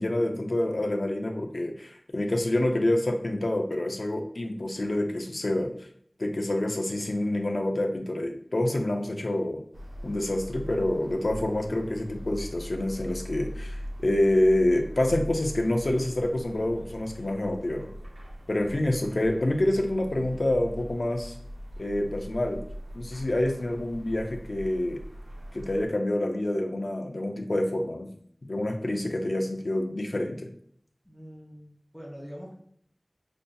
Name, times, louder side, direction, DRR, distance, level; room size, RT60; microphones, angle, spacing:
voice 1, 0.0-5.7 6.2-9.6 10.0-17.9 18.5-21.4 21.8-22.6 22.9-25.0 25.5-28.1 28.4-30.5, left 1 dB, 80° left, 4 dB, 0.5 m, -27 dB
sound 1, 9.7-25.9, equal, 80° right, 0.5 m, -41 dB
voice 2, 31.0-32.5, equal, 15° right, -4 dB, 1.2 m, -44 dB
5.2 x 2.6 x 2.3 m, 0.63 s
wide cardioid pair, 45°, 0 cm